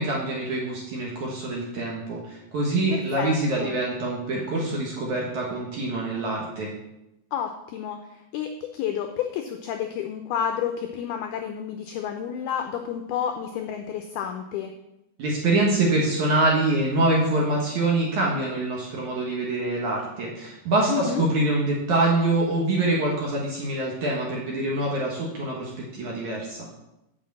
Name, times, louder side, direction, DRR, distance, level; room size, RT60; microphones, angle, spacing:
voice 1, 0.0-6.7 15.2-26.7, right 2 dB, 60° right, -2 dB, 2.2 m, -25 dB
voice 2, 2.9-3.8 7.3-14.7 20.9-21.2, left 8 dB, 85° left, 5 dB, 2.2 m, -30 dB
7.8 x 6.1 x 7.5 m, 0.89 s
omnidirectional pair, 5.1 m